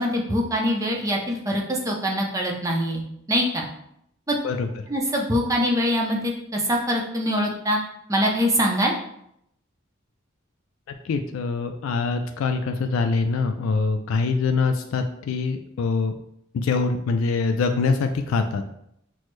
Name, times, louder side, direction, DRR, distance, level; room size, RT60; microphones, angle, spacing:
voice 1, 0.0-3.0 3.3-3.6 4.3-4.4 4.9-7.8 8.1-8.9, equal, 15° right, -1 dB, 0.5 m, -23 dB
voice 2, 11.0-16.1 16.5-18.7, left 4 dB, 80° left, 6 dB, 0.3 m, -24 dB
6.0 x 2.0 x 3.1 m, 0.74 s
head